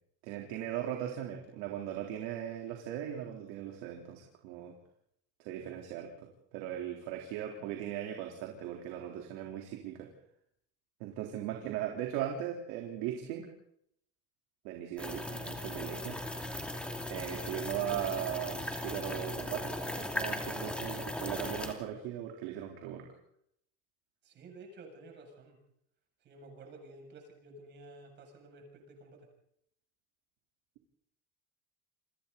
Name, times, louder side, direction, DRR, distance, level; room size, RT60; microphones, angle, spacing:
voice 1, 0.2-4.7 5.4-10.1 11.0-13.5 14.6-16.2 17.1-23.0, right 10 dB, 70° right, 1 dB, 3.8 m, -38 dB
sound 1, 15.0-21.7, left 1 dB, 5° left, 2.6 m, -38 dB
voice 2, 24.2-25.6 26.2-29.2, right 2 dB, 35° right, 2 dB, 7.3 m, -52 dB
29.0 x 24.0 x 4.1 m, 0.72 s
cardioid pair, 170°, 30 cm